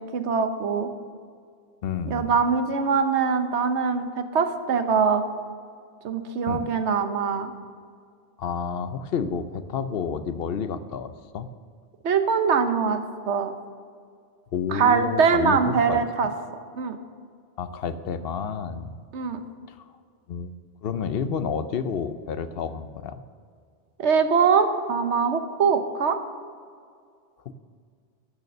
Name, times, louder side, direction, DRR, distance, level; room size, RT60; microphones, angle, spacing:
voice 1, 0.1-0.9 2.1-5.2 6.0-7.5 12.0-13.0 13.3-13.5 14.7-16.3 16.7-17.0 19.1-19.4 24.0-26.2, right 6 dB, 85° right, 8 dB, 1.2 m, -22 dB
voice 2, 1.8-2.3 6.5-6.7 8.4-11.5 14.5-16.3 17.6-19.0 20.3-20.5 20.8-23.2 27.5-27.6, left 6 dB, 65° left, 11 dB, 0.8 m, -30 dB
12.5 x 6.7 x 6.5 m, 2.2 s
omnidirectional pair, 1.1 m